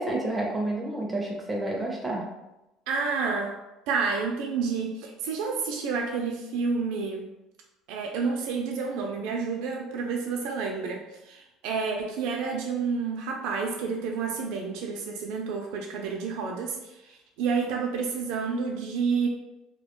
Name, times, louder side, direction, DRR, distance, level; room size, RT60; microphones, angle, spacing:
voice 1, 0.0-2.3, right 1 dB, 15° right, -1 dB, 0.4 m, -29 dB
voice 2, 2.9-3.6 3.9-7.3 7.9-19.3, right 5 dB, 80° right, 1 dB, 0.3 m, -29 dB
2.3 x 2.1 x 2.9 m, 0.97 s
cardioid pair, 125°, 0 cm